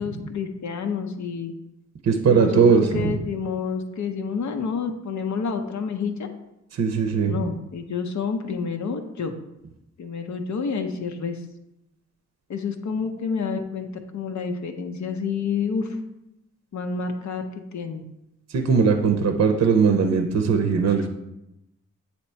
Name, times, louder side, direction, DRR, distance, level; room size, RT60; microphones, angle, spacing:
voice 1, 0.0-1.5 2.3-6.3 7.2-9.3 10.0-11.4 12.5-13.9 14.1-16.0 16.7-17.4 17.7-18.0, left 5 dB, 65° left, 6 dB, 0.7 m, -29 dB
voice 2, 2.0-3.2 6.7-7.5 18.5-21.1, right 5 dB, 55° right, 5 dB, 0.6 m, -20 dB
8.2 x 2.9 x 4.3 m, 0.88 s
wide cardioid pair, 115°, 30 cm